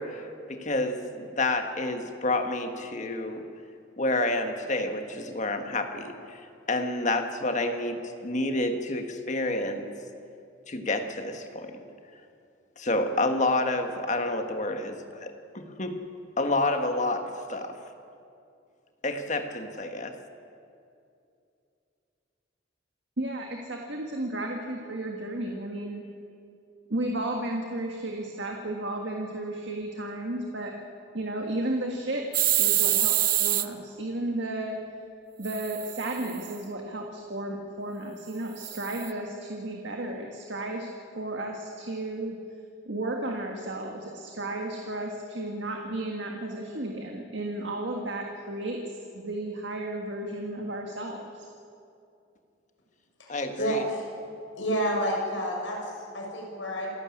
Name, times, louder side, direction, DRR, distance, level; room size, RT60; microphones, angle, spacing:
voice 1, 0.0-3.4 4.0-6.4 6.7-9.9 10.7-11.7 12.8-15.9 16.4-17.8 19.0-20.1 53.3-53.8, left 2 dB, 40° left, 6 dB, 1.6 m, -29 dB
voice 2, 23.2-26.0 26.9-30.7 31.1-32.2 32.6-34.8 35.4-40.9 41.2-42.3 42.9-48.8 49.1-51.5, right 1 dB, 70° right, 2 dB, 1.8 m, -33 dB
sound 1, 32.3-33.6 35.4-36.5 38.6-39.1, right 14 dB, 50° right, 0.7 m, -25 dB
voice 3, 53.2-54.0 54.6-56.9, equal, 90° left, -1 dB, 6.3 m, -30 dB
28.0 x 12.0 x 8.6 m, 2.5 s
head